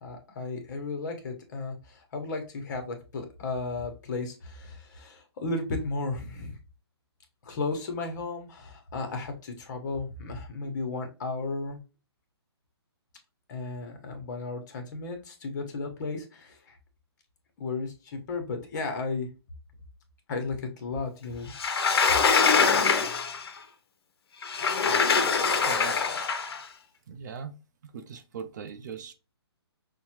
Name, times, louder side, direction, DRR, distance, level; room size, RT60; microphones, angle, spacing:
voice 1, 0.0-6.6 7.4-11.8 13.5-16.8 17.6-19.3 20.3-21.5, left 3 dB, 45° left, 1.1 m, -34 dB
Sliding door, 21.5-23.5 24.4-26.6, left 5 dB, 65° left, 0.7 m, -23 dB
voice 2, 25.7-26.5 27.1-27.5 27.9-29.1, right 6 dB, 40° right, 0.5 m, -40 dB
5.7 x 2.2 x 2.9 m
hypercardioid pair, 155°, 14 cm